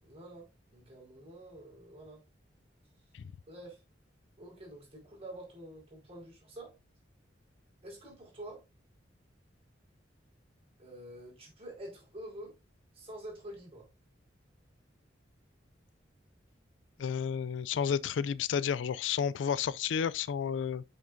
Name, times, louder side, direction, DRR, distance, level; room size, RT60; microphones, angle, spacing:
voice 1, 0.0-2.2 3.5-3.8 4.4-6.8 7.8-8.6 10.8-12.6 12.9-13.9, right 1 dB, 35° right, 4.8 m, -47 dB
voice 2, 17.0-20.8, left 7 dB, 85° left, 0.4 m, -31 dB
8.5 x 6.4 x 2.6 m
head